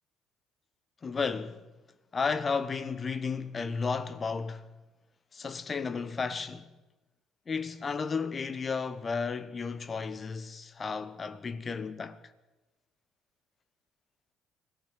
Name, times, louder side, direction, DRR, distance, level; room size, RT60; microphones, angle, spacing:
voice 1, 1.0-1.6 2.1-4.6 5.3-6.7 7.5-12.2, left 5 dB, 35° left, 1.4 m, -33 dB
23.5 x 18.0 x 6.6 m
figure-of-eight pair, 50°, 0 cm